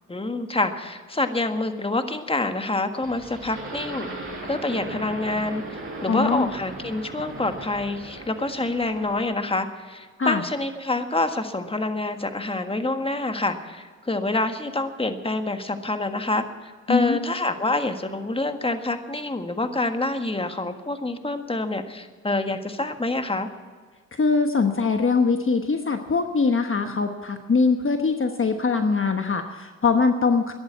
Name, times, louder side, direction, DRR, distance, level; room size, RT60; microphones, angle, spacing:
voice 1, 0.1-4.1 4.4-23.5, left 2 dB, 15° left, 7 dB, 1.6 m, -27 dB
sound 1, 3.0-9.3, right 2 dB, 35° right, 5.7 m, -37 dB
voice 2, 6.1-6.5 10.2-10.4 16.9-17.2 24.2-30.5, left 4 dB, 35° left, 6 dB, 1.2 m, -22 dB
13.0 x 11.0 x 8.4 m, 1.5 s
supercardioid pair, 55°, 34 cm